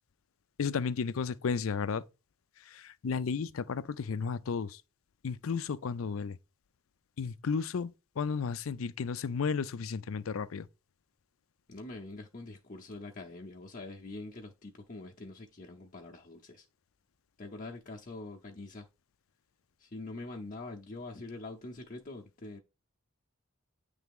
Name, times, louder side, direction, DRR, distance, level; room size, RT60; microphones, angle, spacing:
voice 1, 0.6-2.0 2.7-4.8 5.2-6.4 7.2-10.7, left 5 dB, 85° left, 0.5 m, -33 dB
voice 2, 11.7-16.7 17.4-18.9 19.8-22.6, left 2 dB, 40° left, 0.8 m, -44 dB
9.2 x 3.4 x 3.6 m
head